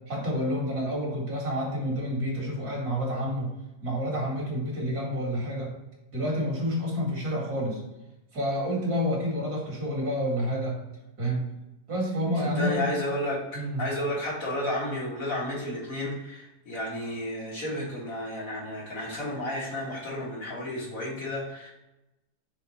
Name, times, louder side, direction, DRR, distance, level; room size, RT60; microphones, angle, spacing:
voice 1, 0.1-3.6 3.8-5.7 6.1-7.8 8.3-10.8 11.2-11.5 11.9-12.8 13.5-13.9, equal, 65° right, -3 dB, 2.6 m, -29 dB
voice 2, 12.4-13.4 13.8-21.7, left 1 dB, 60° left, -6 dB, 2.4 m, -32 dB
6.4 x 3.8 x 4.2 m, 0.97 s
omnidirectional pair, 1.7 m